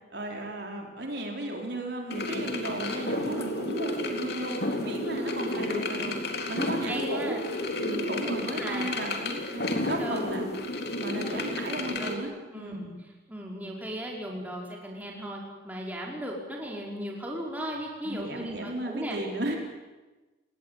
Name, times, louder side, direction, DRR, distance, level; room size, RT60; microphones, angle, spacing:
voice 1, 0.1-6.1 6.5-7.4 7.8-10.5 11.0-12.8 18.0-19.6, right 1 dB, 60° right, 1 dB, 4.4 m, -35 dB
sound 1, 2.1-12.2, left 2 dB, 55° left, 3.6 m, -32 dB
voice 2, 5.1-5.6 6.9-7.4 8.2-8.9 9.3-9.4 10.0-10.4 11.3-11.5 11.8-12.2 12.5-12.9 13.3-19.2, equal, 10° right, -2 dB, 5.3 m, -37 dB
29.5 x 19.5 x 9.4 m, 1.2 s
head